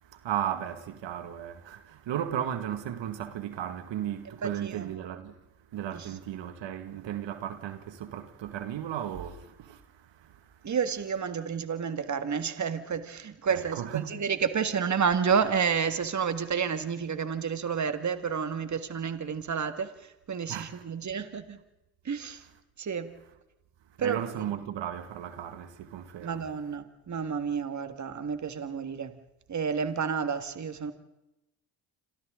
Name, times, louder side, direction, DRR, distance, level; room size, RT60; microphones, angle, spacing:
voice 1, 0.0-5.4 5.7-10.5 13.5-14.1 20.5-20.8 24.0-26.5, right 10 dB, 70° right, 2.0 m, -35 dB
voice 2, 4.3-4.9 5.9-6.1 10.6-21.6 22.1-22.4 22.8-23.1 24.0-24.2 26.2-29.1 29.5-30.9, right 6 dB, 35° right, 2.0 m, -30 dB
29.0 x 27.0 x 3.8 m
supercardioid pair, 70°, 46 cm